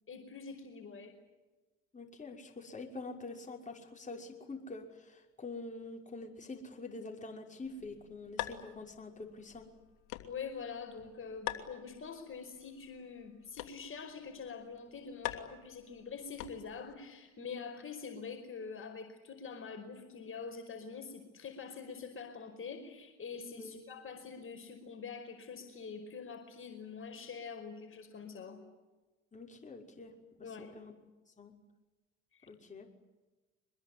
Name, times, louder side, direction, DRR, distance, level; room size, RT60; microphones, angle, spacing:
voice 1, 0.1-1.1 10.3-28.6 30.4-30.7 32.3-32.4, left 5 dB, 35° left, 4 dB, 5.3 m, -45 dB
voice 2, 1.9-9.7 23.6-23.8 29.3-30.1 30.6-30.9 31.4-31.5 32.5-32.9, left 3 dB, 20° left, 1 dB, 5.8 m, -46 dB
sound 1, 7.6-16.9, left 15 dB, 70° left, 2.8 m, -46 dB
24.5 x 21.0 x 9.8 m, 1.2 s
hypercardioid pair, 75°, 35 cm